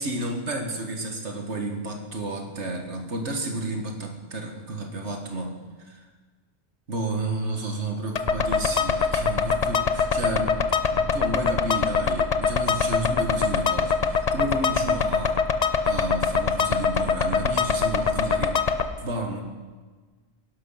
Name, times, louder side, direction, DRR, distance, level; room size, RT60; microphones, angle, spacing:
voice 1, 0.0-6.1 6.9-10.6 10.9-19.4, right 2 dB, 90° right, 3 dB, 2.1 m, -31 dB
sound 1, 8.2-18.8, left 5 dB, 40° left, 0.8 m, -24 dB
17.5 x 11.5 x 5.7 m, 1.4 s
omnidirectional pair, 1.1 m